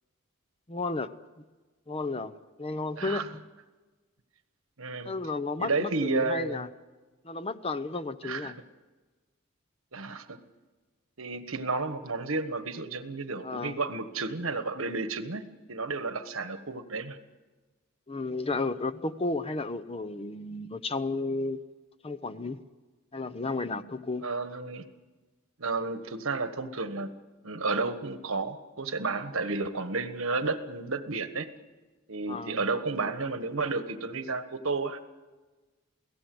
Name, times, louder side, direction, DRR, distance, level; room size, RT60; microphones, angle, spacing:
voice 1, 0.7-1.1 1.4-1.5 1.9-2.3 2.6-3.4 5.1-6.7 7.2-8.6 13.4-13.8 18.1-21.6 22.0-22.6 23.1-24.3 32.3-32.6, left 3 dB, 25° left, 0.7 m, -33 dB
voice 2, 4.8-5.1 5.6-6.7 8.2-8.5 9.9-10.4 11.2-15.4 15.7-17.2 24.2-24.8 25.6-27.1 27.4-31.5 32.1-35.0, right 3 dB, 70° right, 1.4 m, -32 dB
28.5 x 17.0 x 7.8 m
head